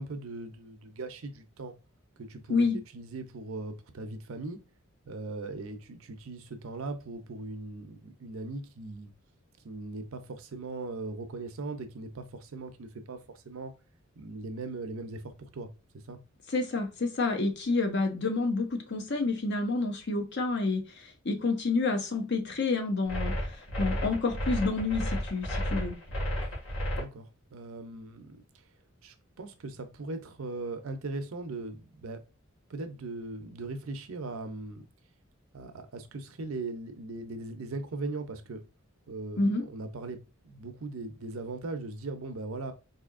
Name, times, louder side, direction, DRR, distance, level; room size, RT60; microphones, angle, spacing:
voice 1, 0.0-1.7 2.2-2.6 2.9-4.6 5.1-9.1 9.6-13.7 14.2-15.7 16.1-16.2 26.9-28.4 29.0-32.2 32.7-34.8 35.5-38.6 39.1-40.2 40.4-42.7, right 3 dB, 80° right, 0.6 m, -39 dB
voice 2, 16.5-25.9 39.4-39.6, left 3 dB, 55° left, 0.8 m, -29 dB
sound 1, 23.1-27.0, equal, 75° left, 1.9 m, -32 dB
4.2 x 2.7 x 2.5 m
head